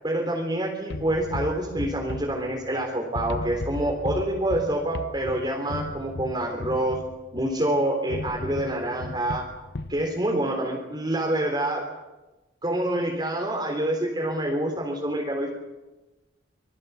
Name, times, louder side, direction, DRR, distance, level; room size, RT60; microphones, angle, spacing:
voice 1, 0.0-7.0 7.3-9.5 9.9-11.9 12.6-15.5, right 1 dB, 25° right, 0 dB, 3.8 m, -27 dB
sound 1, 0.9-2.8 3.2-7.6 8.1-10.0, left 2 dB, 65° left, 0.9 m, -35 dB
26.5 x 22.5 x 7.2 m, 1.1 s
head